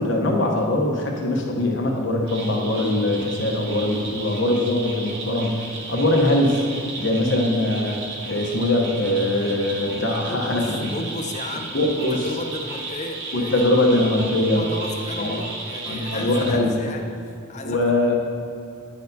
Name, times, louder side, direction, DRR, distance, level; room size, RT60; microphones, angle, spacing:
voice 1, 0.0-5.6 5.9-6.7 7.0-8.0 8.3-10.9 11.7-12.2 13.3-14.6 15.2-15.4 15.9-16.7 17.6-18.1, left 1 dB, 55° left, 1 dB, 0.8 m, -22 dB
sound 1, 2.3-16.5, right 3 dB, 50° right, 0.8 m, -34 dB
voice 2, 10.3-13.6 14.0-14.2 14.5-17.8, left 2 dB, 35° left, 4 dB, 0.4 m, -34 dB
9.7 x 4.3 x 2.7 m, 2.7 s
head